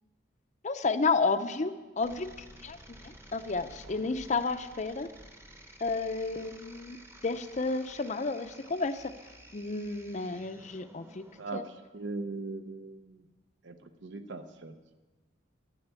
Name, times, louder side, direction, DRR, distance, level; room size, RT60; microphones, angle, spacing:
voice 1, 0.6-2.3 2.6-2.8 3.0-5.1 5.8-7.0 7.2-9.1 9.5-11.2 11.5-11.6, left 4 dB, 35° left, 9 dB, 0.5 m, -31 dB
sound 1, 2.0-11.5, right 1 dB, 15° right, 0.9 m, -52 dB
voice 2, 11.9-13.2 13.6-14.8, right 3 dB, 65° right, 9 dB, 0.8 m, -39 dB
13.0 x 9.2 x 8.2 m, 1.2 s
head